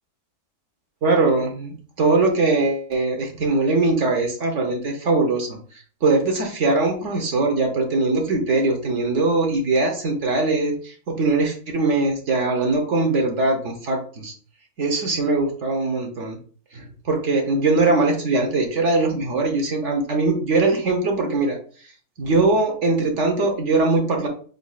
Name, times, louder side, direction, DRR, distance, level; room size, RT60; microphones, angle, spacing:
voice 1, 1.0-5.6 6.0-14.3 14.8-16.4 16.7-21.6 22.2-24.3, right 3 dB, 55° right, 2 dB, 1.0 m, -21 dB
4.7 x 4.0 x 2.3 m, 0.43 s
omnidirectional pair, 1.6 m